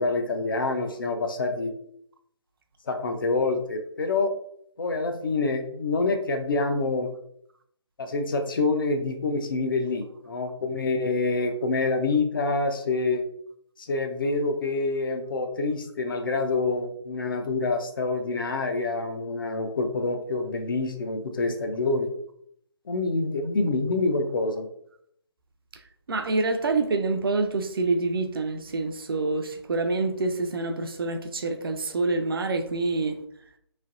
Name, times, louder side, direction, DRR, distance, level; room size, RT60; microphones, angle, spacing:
voice 1, 0.0-1.7 2.9-4.3 4.8-7.1 8.0-13.2 13.8-22.1 22.9-24.7, left 3 dB, 50° left, 0.6 m, -26 dB
voice 2, 26.1-33.2, right 3 dB, 55° right, 0.5 m, -27 dB
3.8 x 3.2 x 2.5 m
figure-of-eight pair, 150°, 15 cm